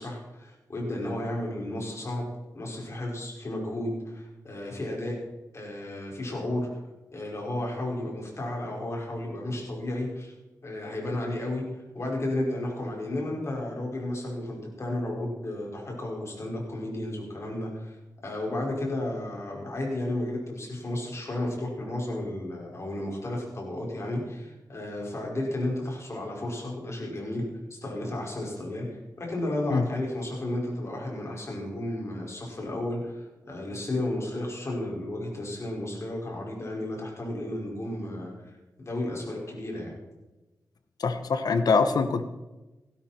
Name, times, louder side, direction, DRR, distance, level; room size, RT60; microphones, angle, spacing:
voice 1, 0.0-2.3 2.5-5.2 5.5-6.7 7.1-10.3 10.6-18.0 18.2-27.4 27.7-38.3 38.8-40.0, left 1 dB, 45° left, -1 dB, 5.5 m, -33 dB
voice 2, 41.0-42.2, left 4 dB, 75° left, 9 dB, 1.1 m, -24 dB
16.5 x 12.5 x 4.5 m, 1.1 s
wide cardioid pair, 95°, 7 cm